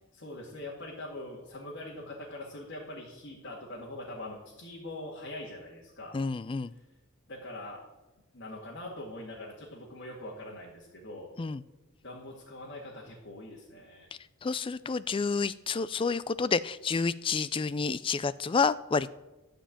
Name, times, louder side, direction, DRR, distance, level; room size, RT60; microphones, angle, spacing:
voice 1, 0.1-6.2 7.3-7.8 8.3-11.3 12.0-14.1, left 1 dB, 55° left, -4 dB, 2.2 m, -43 dB
voice 2, 6.1-6.7 11.4-11.6 14.4-19.1, left 5 dB, 25° left, 16 dB, 0.3 m, -29 dB
13.0 x 5.2 x 8.6 m, 1.1 s
head